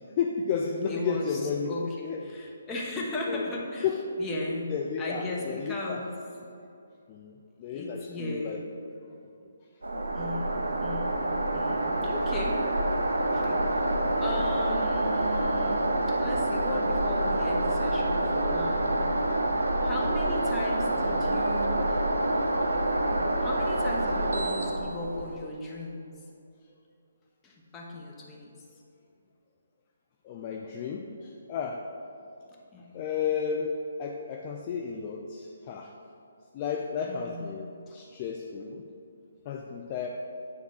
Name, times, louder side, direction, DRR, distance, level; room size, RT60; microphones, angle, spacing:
voice 1, 0.0-2.2 3.3-3.5 3.8-4.2 4.7-6.0 6.4-6.5 7.1-8.6 11.2-11.3 12.0-12.1 13.3-13.4 30.2-31.8 32.9-35.9 36.5-38.8 39.5-40.1, left 6 dB, 35° left, 1 dB, 0.5 m, -33 dB
voice 2, 0.9-3.9 4.2-6.1 7.7-8.6 10.1-12.6 13.1-13.8 14.2-19.1 19.8-21.8 23.4-26.1 27.4-28.5 32.7-32.9 37.0-38.0, left 1 dB, 15° left, -2 dB, 1.2 m, -37 dB
sound 1, 9.8-25.4, right 1 dB, 85° right, 0.9 m, -27 dB
9.0 x 3.6 x 6.2 m, 2.6 s
hypercardioid pair, 145°, 0 cm